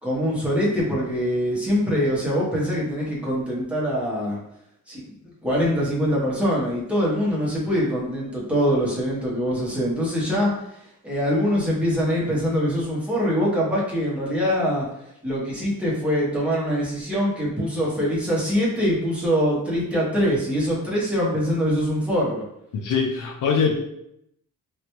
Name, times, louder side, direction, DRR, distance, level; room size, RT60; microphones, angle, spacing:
voice 1, 0.0-4.4 4.9-5.1 5.4-10.5 11.0-14.9 15.2-22.4 23.6-23.8, equal, 5° right, -6 dB, 0.9 m, -23 dB
voice 2, 22.7-23.8, left 6 dB, 65° left, 2 dB, 0.5 m, -22 dB
3.2 x 2.4 x 2.9 m, 0.78 s
wide cardioid pair, 135°, 35 cm